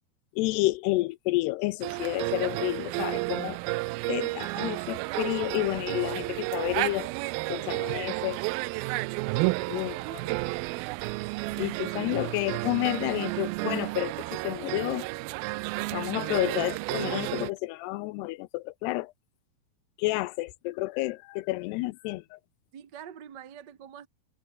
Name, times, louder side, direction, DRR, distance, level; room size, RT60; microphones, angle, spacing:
voice 1, 0.3-3.6 4.1-7.1 7.5-8.4 9.7-10.4 11.6-14.1 14.4-15.1 15.9-19.1 20.0-22.4, left 20 dB, 85° left, 2.7 m, -30 dB
sound 1, 1.8-17.5, right 23 dB, 85° right, 2.1 m, -32 dB
voice 2, 11.4-11.8 22.7-24.1, right 9 dB, 55° right, 1.1 m, -46 dB
omnidirectional pair, 4.8 m